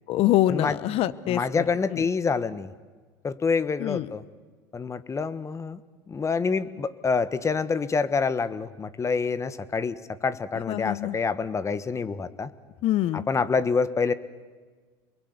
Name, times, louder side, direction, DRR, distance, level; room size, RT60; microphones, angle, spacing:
voice 1, 0.1-1.6 1.9-2.1 3.8-4.1 10.7-11.2 12.8-13.2, left 14 dB, 55° left, 17 dB, 1.1 m, -25 dB
voice 2, 1.3-2.7 3.2-4.2 4.7-5.8 6.1-12.5 13.3-14.1, left 5 dB, 25° left, 14 dB, 1.3 m, -27 dB
28.5 x 22.0 x 8.2 m, 1.4 s
hypercardioid pair, 85°, 12 cm